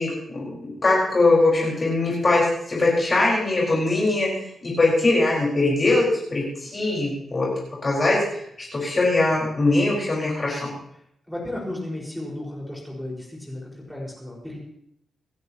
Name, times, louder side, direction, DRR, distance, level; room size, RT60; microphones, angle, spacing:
voice 1, 0.0-4.3 4.6-7.5 7.8-8.2 8.6-10.7, left 2 dB, 25° left, -5 dB, 4.5 m, -21 dB
voice 2, 11.3-14.6, left 1 dB, ahead, -4 dB, 4.7 m, -34 dB
27.0 x 10.5 x 2.9 m, 0.72 s
wide cardioid pair, 170°, 0 cm